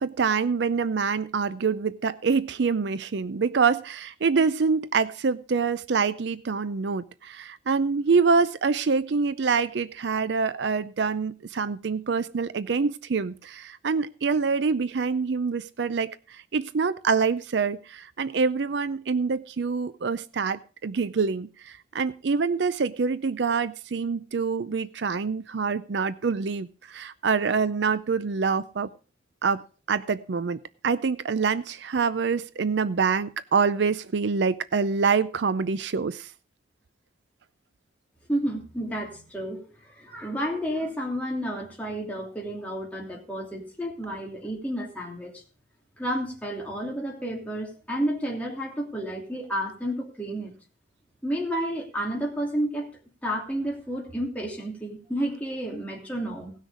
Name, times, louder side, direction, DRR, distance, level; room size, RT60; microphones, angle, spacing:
voice 1, 0.0-28.9 29.4-29.6 29.9-36.3, right 5 dB, 65° right, 0.5 m, -26 dB
voice 2, 38.3-39.6 39.9-45.4 46.0-50.5 51.2-52.9 53.2-56.5, equal, 10° left, 2.9 m, -31 dB
17.5 x 6.4 x 4.9 m
head